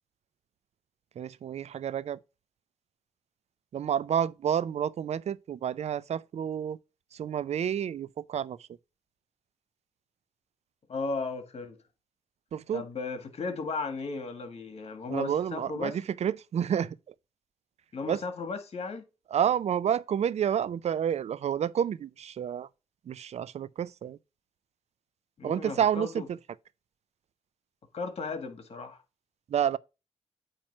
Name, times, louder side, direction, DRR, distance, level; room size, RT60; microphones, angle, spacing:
voice 1, 1.2-2.2 3.7-6.8 7.1-8.6 12.5-12.8 15.1-17.0 18.0-18.2 19.3-22.7 23.1-24.2 25.4-26.1 29.5-29.8, right 9 dB, 70° right, 0.4 m, -29 dB
voice 2, 10.9-11.8 12.7-16.0 17.9-19.0 25.4-26.3 27.9-29.0, left 4 dB, 65° left, 1.8 m, -35 dB
8.9 x 3.1 x 5.8 m
cardioid pair, 65°, 11 cm